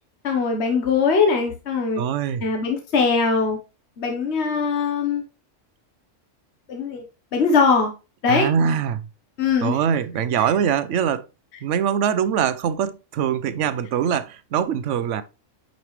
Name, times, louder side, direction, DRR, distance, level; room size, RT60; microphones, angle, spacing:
voice 1, 0.2-2.0 2.4-3.6 4.0-5.2 6.7-7.0 7.3-7.9 8.2-8.5 9.4-9.8 10.4-10.5, left 5 dB, 60° left, 1.3 m, -21 dB
voice 2, 1.9-2.4 8.3-9.0 9.6-11.2 11.6-15.2, right 8 dB, 75° right, 1.0 m, -23 dB
9.1 x 5.2 x 3.1 m
omnidirectional pair, 1.3 m